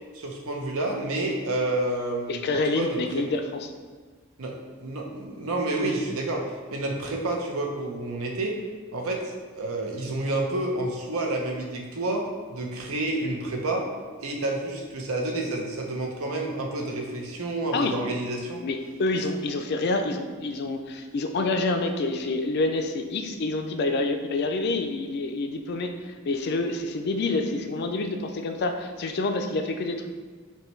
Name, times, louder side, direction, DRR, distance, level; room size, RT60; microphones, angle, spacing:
voice 1, 0.1-3.2 4.4-8.5 8.9-12.2 12.5-13.9 14.2-18.6, right 2 dB, 80° right, 0 dB, 0.7 m, -29 dB
voice 2, 2.3-3.7 17.7-18.0 18.6-30.1, left 2 dB, 50° left, 5 dB, 0.4 m, -27 dB
5.4 x 2.2 x 3.1 m, 1.6 s
head